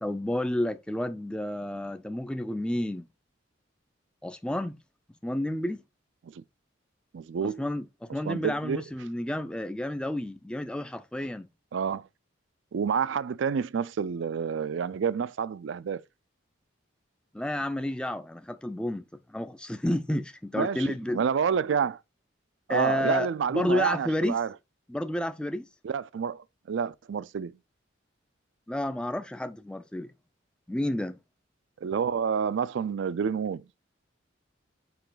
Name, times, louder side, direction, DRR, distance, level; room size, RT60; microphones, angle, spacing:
voice 1, 0.0-3.1 4.2-4.7 5.2-5.8 7.4-11.5 17.3-21.2 22.7-24.3 24.9-25.7 28.7-30.1 30.7-31.2, left 1 dB, 5° left, 0.3 m, -31 dB
voice 2, 7.1-7.6 8.3-8.8 11.7-12.1 12.7-16.0 20.6-22.0 22.7-24.5 25.8-27.5 31.8-33.6, right 6 dB, 65° right, 0.4 m, -29 dB
6.9 x 4.8 x 3.8 m
head